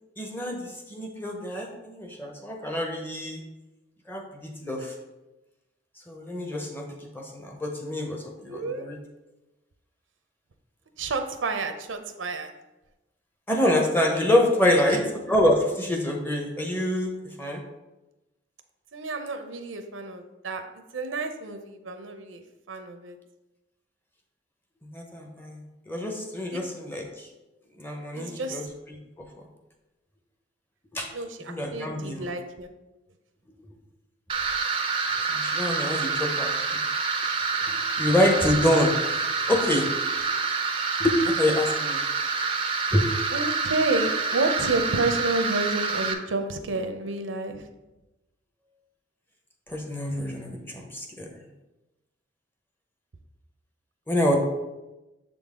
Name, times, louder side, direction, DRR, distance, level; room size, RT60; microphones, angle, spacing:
voice 1, 0.2-3.4 4.1-4.9 6.1-6.9 7.1-9.0 13.5-15.0 15.3-17.1 17.4-17.6 24.9-25.6 25.9-27.3 27.8-28.6 30.9-31.1 31.4-32.3 35.3-36.5 37.7-39.2 39.5-40.2 41.0-42.0 42.9-43.0 49.7-51.3 54.1-54.4, left 1 dB, 10° left, 2 dB, 0.7 m, -26 dB
voice 2, 8.5-8.9 11.0-12.5 14.9-15.1 18.9-20.6 20.9-22.4 22.7-23.2 26.5-26.6 28.1-28.7 31.1-32.7 43.3-47.7, right 3 dB, 90° right, 7 dB, 0.6 m, -30 dB
sound 1, 34.3-46.1, right 4 dB, 30° right, 0.4 m, -27 dB
6.9 x 3.9 x 3.6 m, 1.0 s
head